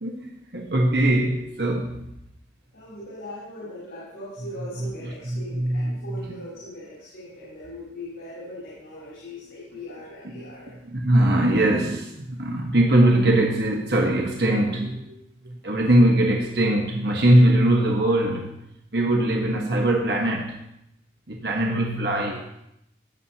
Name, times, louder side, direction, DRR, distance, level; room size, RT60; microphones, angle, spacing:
voice 1, 0.0-2.1 4.8-4.9 5.2-6.0 10.4-10.5 10.8-15.2 15.4-18.6 18.9-20.6 21.3-22.5, right 1 dB, 60° right, 0 dB, 1.2 m, -21 dB
voice 2, 2.7-10.7 21.5-22.0, left 1 dB, 85° left, -8 dB, 4.1 m, -40 dB
17.0 x 7.5 x 2.9 m, 0.81 s
head